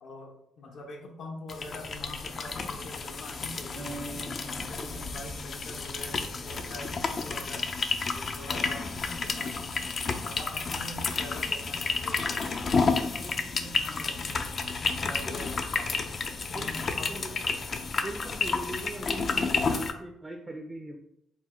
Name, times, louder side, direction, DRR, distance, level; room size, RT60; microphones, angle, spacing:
voice 1, 0.0-4.2 4.6-7.7 8.1-8.9 9.2-9.7 10.2-16.1 16.5-17.7, left 2 dB, 70° left, 0 dB, 0.8 m, -44 dB
sound 1, 1.5-19.9, left 4 dB, 45° left, 0.4 m, -31 dB
sound 2, 3.8-7.5, right 3 dB, 50° right, 0.7 m, -45 dB
voice 2, 16.5-17.3 18.0-21.0, right 2 dB, 15° right, 3 dB, 0.5 m, -40 dB
4.4 x 2.1 x 4.2 m, 0.77 s
cardioid pair, 90°, 0 cm